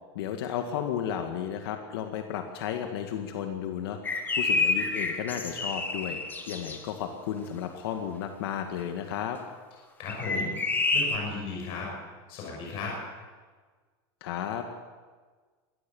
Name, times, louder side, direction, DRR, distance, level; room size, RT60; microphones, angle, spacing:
voice 1, 0.1-6.2 6.5-9.4 14.2-14.7, left 9 dB, 75° left, 5 dB, 2.0 m, -33 dB
sound 1, 4.0-6.8 10.1-11.2, left 3 dB, 15° left, 1.9 m, -28 dB
voice 2, 10.0-10.5 10.9-11.9 12.3-12.9, left 4 dB, 45° left, -2 dB, 6.4 m, -35 dB
21.5 x 17.0 x 7.2 m, 1.4 s
supercardioid pair, 150°, 13 cm